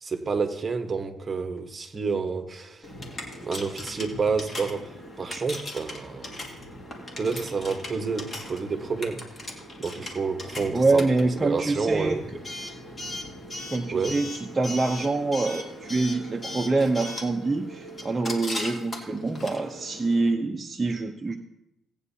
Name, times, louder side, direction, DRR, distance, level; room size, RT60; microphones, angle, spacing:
voice 1, 0.0-2.9 3.4-6.4 7.2-9.2 9.8-11.1 11.4-12.2 13.9-14.2, right 4 dB, 35° right, 1.1 m, -29 dB
Coin (dropping) / Alarm, 2.8-20.3, left 1 dB, 30° left, 2.2 m, -38 dB
voice 2, 10.7-12.2 13.7-14.3 14.5-21.4, right 3 dB, 20° right, 0.8 m, -25 dB
17.5 x 8.9 x 2.8 m
cardioid pair, 90°, 0 cm